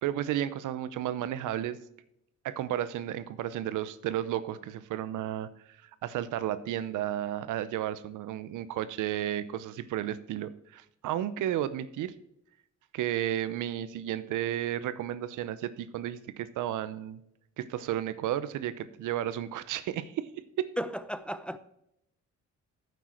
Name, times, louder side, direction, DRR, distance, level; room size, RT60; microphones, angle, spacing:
voice 1, 0.0-1.8 2.4-5.5 5.8-12.1 12.9-17.2 17.6-20.3 20.6-20.7, right 12 dB, 80° right, 0.8 m, -33 dB
voice 2, 20.8-21.6, equal, 5° left, 0.6 m, -34 dB
9.3 x 8.0 x 4.4 m
cardioid pair, 90°, 30 cm